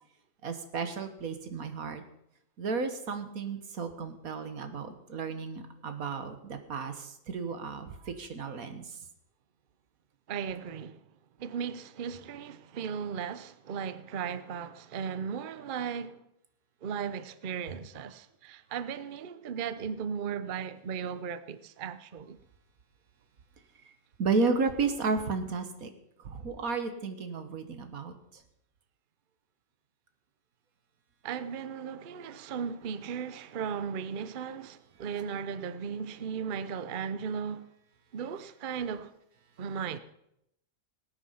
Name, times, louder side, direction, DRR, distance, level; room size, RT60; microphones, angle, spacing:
voice 1, 0.4-2.0 2.6-8.8 24.2-25.9 26.2-28.1, right 4 dB, 85° right, 1.8 m, -33 dB
voice 2, 10.3-11.0 11.4-16.2 16.8-22.4 31.2-37.7 38.1-39.1 39.6-40.0, right 7 dB, 45° right, 0.7 m, -36 dB
19.0 x 8.9 x 5.7 m
omnidirectional pair, 1.5 m